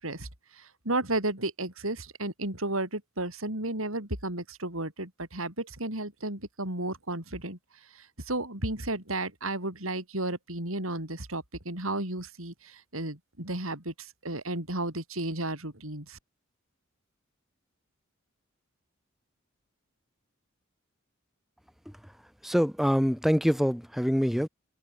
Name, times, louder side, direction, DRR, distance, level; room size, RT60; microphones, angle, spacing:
voice 1, 0.0-7.6 7.9-16.2, right 2 dB, 80° right, 7.9 m, -33 dB
voice 2, 22.4-24.5, equal, ahead, 4.5 m, -25 dB
head